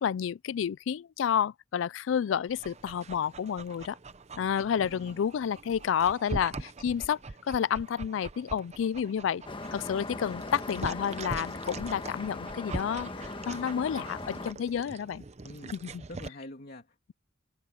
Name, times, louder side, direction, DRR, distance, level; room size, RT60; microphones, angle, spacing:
voice 1, 0.0-4.0 4.4-7.2 7.5-9.4 9.7-15.2 15.7-16.0, left 8 dB, 70° left, 0.3 m, -30 dB
Dog, 2.5-16.3, right 3 dB, 35° right, 0.8 m, -43 dB
voice 2, 4.3-5.3 15.4-15.8 16.1-17.1, left 1 dB, 50° left, 2.9 m, -47 dB
sound 1, 9.4-14.5, left 2 dB, 25° left, 1.3 m, -39 dB
head